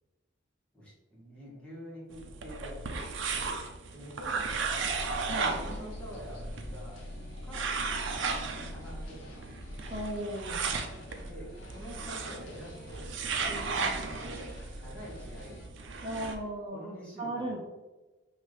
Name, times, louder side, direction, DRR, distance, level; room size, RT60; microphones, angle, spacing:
voice 1, 0.7-3.6 3.9-4.8 5.5-7.0 7.4-7.8 8.7-9.6 11.2-14.5 14.8-15.7 16.7-17.6, equal, 5° left, -7 dB, 1.4 m, -46 dB
sound 1, 2.1-16.4, right 4 dB, 70° right, 0.5 m, -35 dB
sound 2, 5.1-15.7, equal, 70° left, 0.9 m, -47 dB
voice 2, 9.9-10.7 16.0-16.9 17.2-17.6, right 1 dB, 25° right, -6 dB, 0.7 m, -36 dB
5.9 x 2.7 x 3.2 m, 1.1 s
head